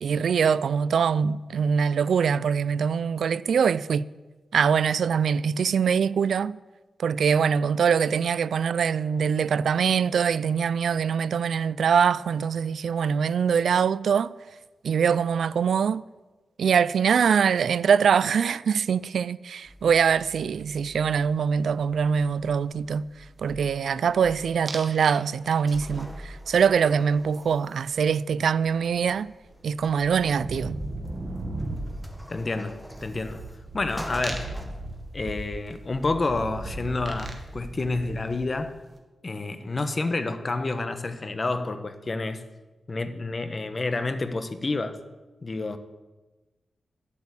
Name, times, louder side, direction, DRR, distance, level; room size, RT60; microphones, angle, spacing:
voice 1, 0.0-4.1 4.5-6.6 7.0-14.3 14.8-16.0 16.6-23.1 23.4-29.3 29.6-30.8, right 7 dB, 90° right, 0.3 m, -23 dB
sound 1, 19.6-38.4, equal, 5° left, 1.5 m, -47 dB
sound 2, 24.7-25.2 25.5-26.0 28.4-28.5 28.7-38.8, right 2 dB, 30° right, 1.8 m, -37 dB
voice 2, 32.3-33.4 33.7-34.6 35.1-38.8 39.2-42.4 42.9-45.0 45.4-45.8, left 3 dB, 35° left, 1.0 m, -29 dB
11.5 x 8.3 x 8.4 m
wide cardioid pair, 120°, 0 cm